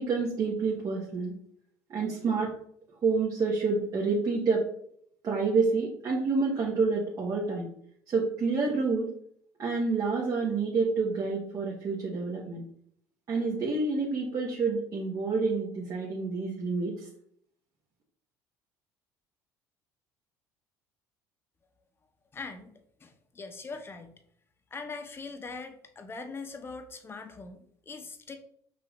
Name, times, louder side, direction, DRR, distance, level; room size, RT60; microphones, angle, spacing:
voice 1, 0.0-1.3 1.9-2.5 3.0-4.6 5.2-7.7 8.1-9.1 9.6-12.6 13.3-17.1, right 4 dB, 45° right, -4 dB, 1.2 m, -28 dB
voice 2, 22.3-22.7 23.0-24.2 24.7-28.4, left 4 dB, 25° left, 7 dB, 0.7 m, -41 dB
5.6 x 2.5 x 3.2 m, 0.65 s
supercardioid pair, 75°, 9 cm